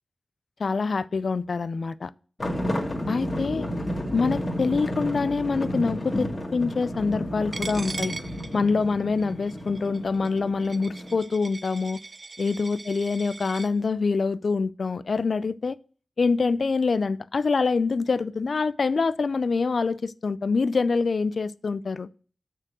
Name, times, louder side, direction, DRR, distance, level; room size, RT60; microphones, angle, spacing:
voice 1, 0.6-2.1 3.1-3.7 4.1-8.2 8.5-12.0 12.4-15.8 16.2-22.1, left 4 dB, 70° left, 0.4 m, -25 dB
sound 1, 2.4-11.2, equal, 35° left, 2.1 m, -31 dB
Coin (dropping), 7.5-13.7, right 3 dB, 55° right, 0.6 m, -40 dB
6.7 x 6.2 x 6.1 m
wide cardioid pair, 65°, 0 cm